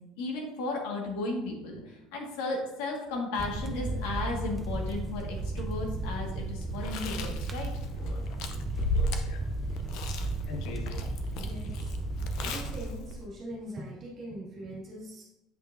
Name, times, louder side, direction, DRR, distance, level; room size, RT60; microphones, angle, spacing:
voice 1, 0.2-7.7, left 3 dB, 80° left, 0 dB, 1.7 m, -35 dB
sound 1, 3.4-12.8, right 2 dB, 10° right, 0.4 m, -34 dB
Chewing mastication, 6.7-13.2, left 1 dB, 55° left, 0.6 m, -36 dB
voice 2, 11.3-12.0 12.4-15.2, right 1 dB, 30° right, -5 dB, 2.2 m, -42 dB
7.8 x 5.5 x 2.6 m, 0.94 s
cardioid pair, 165°, 0 cm